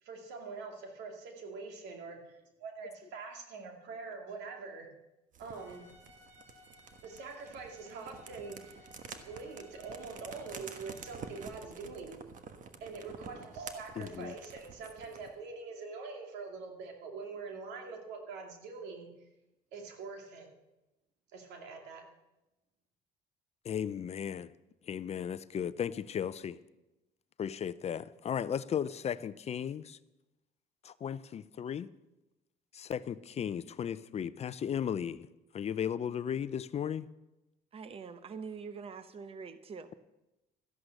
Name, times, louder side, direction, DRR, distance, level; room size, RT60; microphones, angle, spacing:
voice 1, 0.0-4.9 5.4-5.9 7.0-8.9 9.2-12.2 12.8-19.1 19.7-20.5 21.3-22.1, right 4 dB, 90° right, 3 dB, 2.5 m, -44 dB
sound 1, 5.3-15.4, right 5 dB, 50° right, 1.3 m, -49 dB
Bowed string instrument, 5.5-11.5, left 2 dB, 15° right, 4.9 m, -60 dB
voice 2, 14.0-14.3 23.6-24.5 24.9-26.6 27.4-30.0 30.8-31.9 32.7-35.3 35.5-37.1, left 8 dB, 40° left, 16 dB, 0.5 m, -35 dB
voice 3, 37.7-39.9, right 5 dB, 35° right, 11 dB, 0.9 m, -44 dB
13.5 x 11.0 x 6.5 m, 0.97 s
cardioid pair, 110°, 17 cm